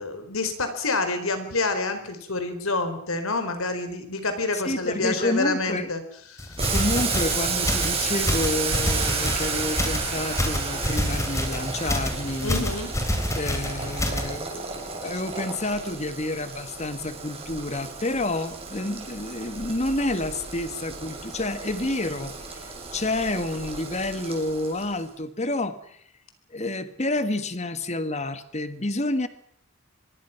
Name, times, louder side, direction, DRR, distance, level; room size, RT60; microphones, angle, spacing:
voice 1, 0.0-6.0 6.3-6.6 12.4-12.9, left 3 dB, 80° left, 8 dB, 4.5 m, -28 dB
voice 2, 4.5-5.9 6.7-12.7 13.3-26.0 26.5-29.3, left 2 dB, 30° left, 11 dB, 1.7 m, -29 dB
sound 1, 6.4-14.4, left 1 dB, 15° left, 3.2 m, -28 dB
Boiling, 6.6-25.0, right 5 dB, 25° right, 6.5 m, -32 dB
25.0 x 22.0 x 5.9 m, 0.69 s
head